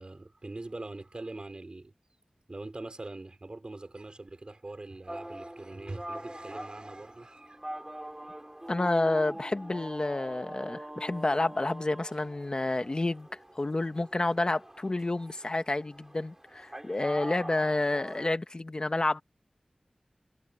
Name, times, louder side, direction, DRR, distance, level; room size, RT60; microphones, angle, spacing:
voice 1, 0.0-1.9 2.5-7.6, right 2 dB, 45° right, 5.6 m, -42 dB
sound 1, 5.1-18.3, right 1 dB, 15° right, 3.4 m, -43 dB
voice 2, 8.7-13.3 13.5-19.2, left 2 dB, 40° left, 1.5 m, -29 dB
wide cardioid pair, 60°, 2 cm